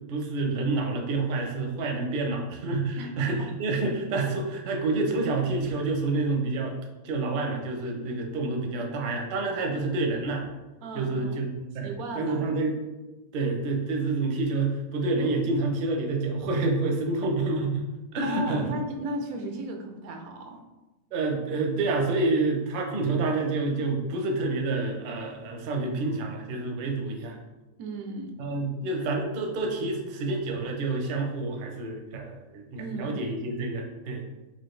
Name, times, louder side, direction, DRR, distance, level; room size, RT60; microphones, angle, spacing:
voice 1, 0.1-6.8 7.0-10.4 10.9-11.9 12.1-12.7 13.3-17.9 18.1-18.6 21.1-27.4 28.4-34.2, right 3 dB, 55° right, 2 dB, 0.6 m, -28 dB
voice 2, 3.0-3.5 10.8-11.4 11.8-12.4 18.2-20.6 27.8-28.3 32.8-33.2, right 2 dB, 90° right, 3 dB, 1.1 m, -35 dB
4.3 x 2.5 x 3.1 m, 1.1 s
omnidirectional pair, 1.5 m